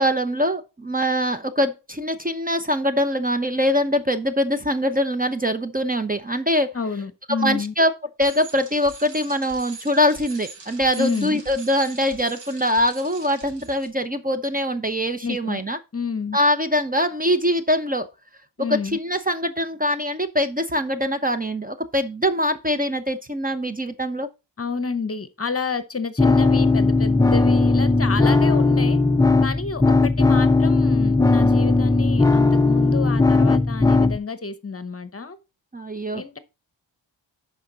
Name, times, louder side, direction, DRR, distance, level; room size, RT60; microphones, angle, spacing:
voice 1, 0.0-6.7 7.3-7.9 8.2-15.8 16.3-18.1 18.9-24.3 35.7-36.4, equal, 20° right, 0.7 m, -23 dB
voice 2, 6.7-7.7 11.0-11.4 15.2-15.6 15.9-16.4 18.6-19.0 24.6-29.0 29.4-35.4 36.1-36.4, left 5 dB, 30° left, 0.9 m, -29 dB
Bicycle, 8.2-13.9, right 3 dB, 70° right, 2.4 m, -42 dB
sound 1, 26.2-34.2, left 3 dB, 10° left, 0.3 m, -17 dB
11.5 x 4.8 x 4.0 m
wide cardioid pair, 90°, 45 cm